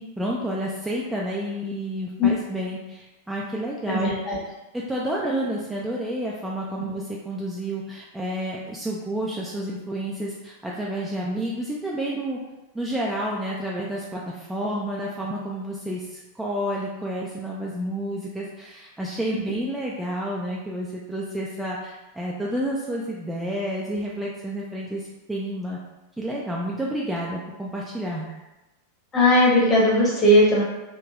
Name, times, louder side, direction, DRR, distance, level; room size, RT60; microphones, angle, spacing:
voice 1, 0.0-4.1 4.7-12.4 12.7-25.0 25.3-25.8 26.2-28.3, right 1 dB, 5° right, -4 dB, 0.3 m, -30 dB
voice 2, 3.8-4.4 29.1-30.6, left 1 dB, 20° left, -4 dB, 0.9 m, -18 dB
3.1 x 2.8 x 2.3 m, 1.0 s
figure-of-eight pair, 90°, 0 cm